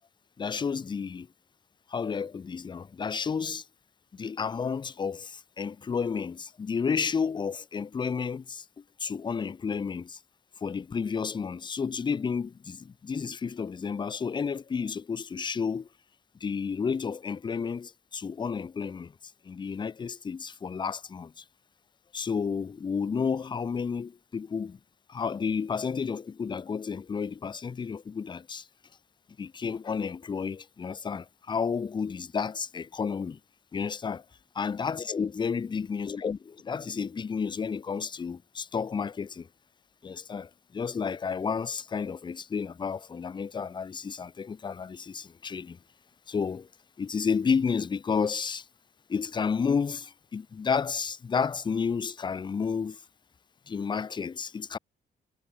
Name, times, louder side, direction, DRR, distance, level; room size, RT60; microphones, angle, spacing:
voice 1, 0.4-1.3 1.9-3.6 4.1-10.2 10.6-15.9 16.4-19.1 19.4-21.4 22.1-24.8 25.1-28.7 29.4-33.4 33.7-34.2 34.5-39.5 40.0-45.8 46.3-46.7 47.0-48.7 49.1-53.0 53.7-54.8, left 6 dB, 25° left, 0.4 m, -31 dB
cardioid pair, 90°, 20 cm